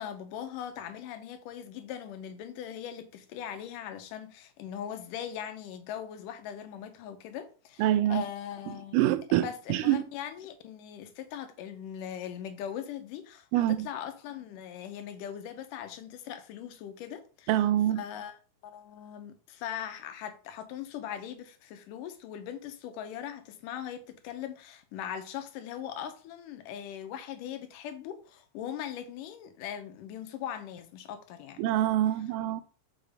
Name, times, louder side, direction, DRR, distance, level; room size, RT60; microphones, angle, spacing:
voice 1, 0.0-7.8 8.1-9.1 9.4-17.5 18.0-18.4 18.6-31.6, left 9 dB, 80° left, 2.3 m, -40 dB
voice 2, 7.8-8.2 8.9-10.1 13.5-13.9 17.5-18.0 31.6-32.6, right 13 dB, 85° right, 2.2 m, -25 dB
5.9 x 5.5 x 3.4 m
omnidirectional pair, 3.8 m